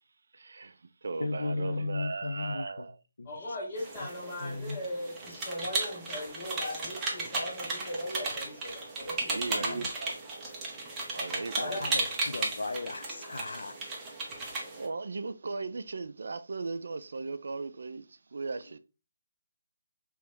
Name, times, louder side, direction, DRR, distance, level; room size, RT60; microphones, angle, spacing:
voice 1, 0.3-3.0 9.3-10.3 11.1-11.8 14.7-18.8, right 3 dB, 55° right, 0.3 m, -37 dB
voice 2, 1.2-2.9 3.2-3.6 4.4-4.8 9.5-9.9 11.6-13.9, left 3 dB, 80° left, 0.4 m, -36 dB
voice 3, 3.2-9.8 11.6-11.8, left 1 dB, 30° left, 1.4 m, -39 dB
sound 1, 3.8-14.9, right 2 dB, 10° right, 0.6 m, -35 dB
3.5 x 3.0 x 3.2 m
hypercardioid pair, 175°, 0 cm